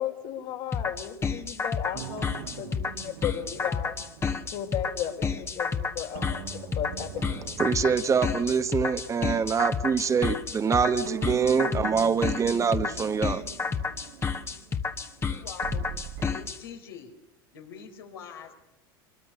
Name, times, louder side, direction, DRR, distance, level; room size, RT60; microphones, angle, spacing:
voice 1, 0.0-3.9 4.5-6.4 6.8-7.5, left 10 dB, 65° left, 3 dB, 4.7 m, -35 dB
sound 1, 0.7-16.6, left 5 dB, 20° left, 1.4 m, -30 dB
sound 2, 1.9-5.7 6.1-10.7 11.0-16.3, right 10 dB, 70° right, 2.1 m, -42 dB
voice 2, 7.6-13.4, right 6 dB, 25° right, 10 dB, 1.1 m, -25 dB
voice 3, 15.2-15.9 16.3-17.2 17.5-18.5, left 7 dB, 85° left, 3 dB, 4.3 m, -44 dB
24.5 x 23.0 x 6.8 m, 0.87 s
hypercardioid pair, 95°, 12 cm